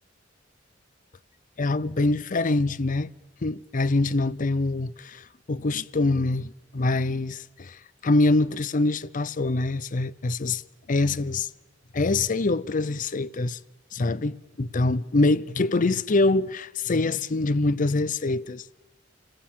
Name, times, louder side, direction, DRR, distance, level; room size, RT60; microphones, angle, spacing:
voice 1, 1.6-3.1 3.4-10.6 10.9-11.5 11.9-13.6 13.9-18.6, left 2 dB, 45° left, 0.6 m, -24 dB
29.0 x 16.0 x 7.4 m
head